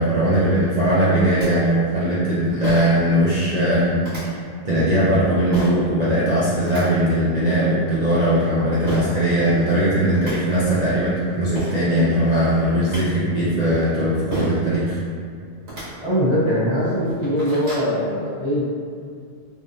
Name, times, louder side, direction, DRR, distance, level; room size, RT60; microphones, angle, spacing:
voice 1, 0.0-4.4 4.6-15.0, right 1 dB, 55° right, -9 dB, 0.5 m, -19 dB
sound 1, 1.4-1.5 2.6-3.0 4.0-4.2 5.5-5.8 6.4-6.8 8.9-9.0 9.8-9.9 10.1-10.3 11.2-11.3 11.5-11.8 12.6-13.0 14.3-14.6 15.6-15.8 16.5-16.6 17.0-17.9, right 1 dB, 80° right, 1.6 m, -30 dB
voice 2, 16.0-18.7, equal, 35° left, -10 dB, 0.6 m, -21 dB
3.4 x 2.5 x 2.6 m, 2.2 s
omnidirectional pair, 1.1 m